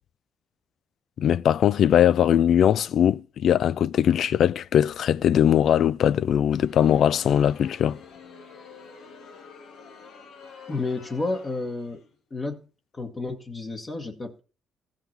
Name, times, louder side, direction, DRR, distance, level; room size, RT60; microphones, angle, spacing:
voice 1, 1.2-8.0, left 9 dB, 65° left, 0.4 m, -20 dB
Crowd, 6.4-12.2, left 5 dB, 85° left, 2.3 m, -47 dB
voice 2, 10.7-12.0 12.3-12.7 12.9-14.4, left 3 dB, 35° left, 1.6 m, -31 dB
15.0 x 5.8 x 4.3 m
cardioid pair, 90°, 0 cm